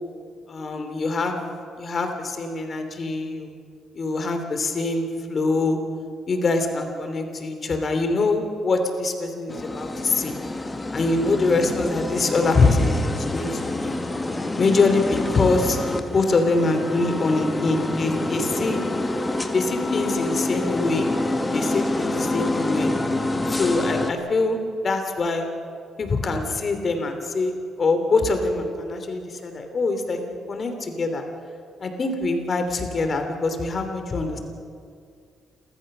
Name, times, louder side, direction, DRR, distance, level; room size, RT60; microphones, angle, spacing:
voice 1, 0.5-1.4 1.8-3.5 3.9-5.8 6.3-10.3 10.9-13.9 14.6-15.8 16.0-18.8 19.5-21.1 21.5-22.9 23.5-24.6 24.8-25.5 26.0-27.5 27.8-30.2 30.5-31.2 31.8-34.4, left 3 dB, 45° left, 6 dB, 3.0 m, -24 dB
sound 1, 9.5-24.1, left 2 dB, 20° left, 1.6 m, -27 dB
29.5 x 14.0 x 6.7 m, 2.3 s
cardioid pair, 90°, 0 cm